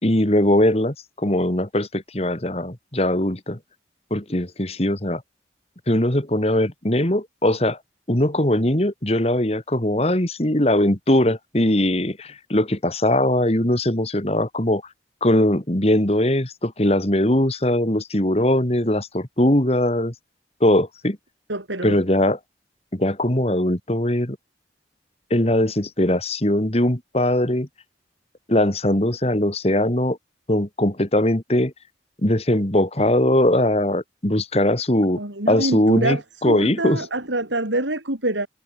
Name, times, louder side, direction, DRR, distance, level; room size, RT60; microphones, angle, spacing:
voice 1, 0.0-3.6 4.1-5.2 5.9-7.8 8.1-14.8 15.2-20.1 20.6-21.2 21.8-22.4 22.9-24.4 25.3-27.7 28.5-30.2 30.5-31.7 32.2-35.2 35.5-37.1, left 1 dB, 35° left, 2.3 m, -20 dB
voice 2, 21.5-22.0 35.2-38.5, right 2 dB, 90° right, 6.8 m, -26 dB
head